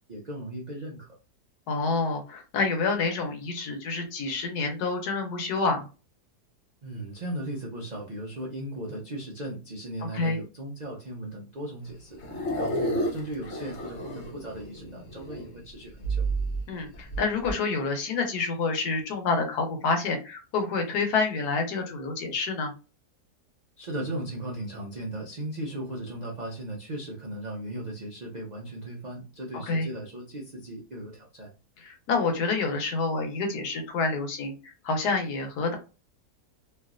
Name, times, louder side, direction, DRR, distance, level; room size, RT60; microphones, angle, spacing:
voice 1, 0.1-1.1 6.8-16.3 23.8-31.5, right 1 dB, 70° right, -2 dB, 0.4 m, -37 dB
voice 2, 1.7-5.9 10.1-10.4 16.7-22.7 29.6-29.9 31.8-35.8, left 4 dB, 75° left, 4 dB, 1.3 m, -28 dB
sound 1, 11.8-15.6 15.9-17.5, right 1 dB, 55° left, 0.9 m, -31 dB
3.2 x 2.5 x 2.4 m, 0.32 s
omnidirectional pair, 1.8 m